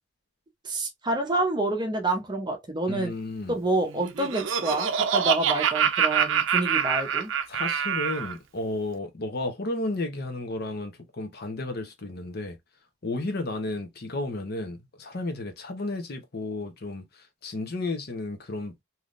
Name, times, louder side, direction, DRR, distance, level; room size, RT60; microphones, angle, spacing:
voice 1, 0.6-3.1 3.5-7.3, right 2 dB, 20° right, 0.7 m, -28 dB
voice 2, 2.9-3.6 7.5-12.6 13.0-18.7, left 2 dB, 55° left, 0.8 m, -33 dB
Laughter, 3.9-8.3, right 7 dB, 70° right, 0.5 m, -25 dB
3.5 x 2.8 x 2.5 m
head